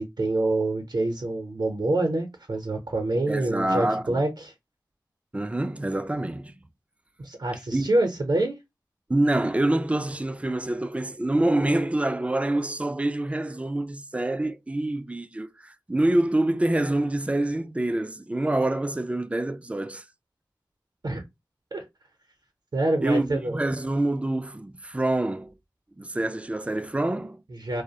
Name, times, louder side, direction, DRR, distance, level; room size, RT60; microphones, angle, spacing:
voice 1, 0.0-4.5 7.2-8.6 21.0-21.2 21.7-21.8 22.7-23.6 27.5-27.8, right 2 dB, 60° right, 0.6 m, -26 dB
voice 2, 3.3-4.2 5.3-6.5 7.7-7.9 9.1-20.0 23.0-25.5 26.0-27.4, right 1 dB, 15° right, 0.3 m, -26 dB
2.4 x 2.0 x 2.7 m
cardioid pair, 40°, 8 cm